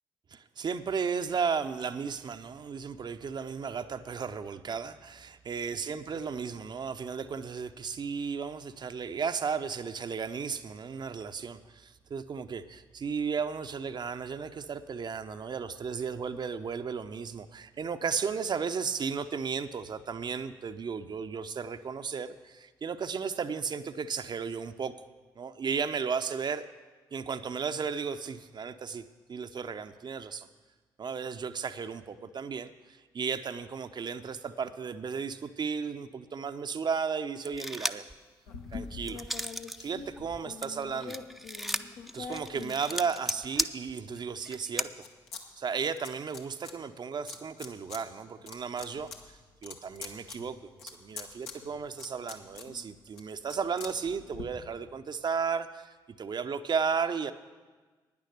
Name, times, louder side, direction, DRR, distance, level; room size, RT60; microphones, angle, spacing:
voice 1, 0.3-25.1 25.4-26.7 27.1-29.0 29.3-30.5 31.0-38.0 38.7-39.2 39.8-41.2 42.1-45.0 45.6-57.3, right 6 dB, 40° right, 9 dB, 0.6 m, -34 dB
sound 1, 37.4-38.1 38.6-39.8 40.2-44.9, equal, ahead, 0.5 m, -35 dB
sound 2, 38.5-43.5 44.0-45.4 45.7-46.7 47.3-48.0 48.4-54.4, left 5 dB, 75° left, 1.0 m, -45 dB
10.5 x 9.7 x 6.6 m, 1.3 s
figure-of-eight pair, 40°, 11 cm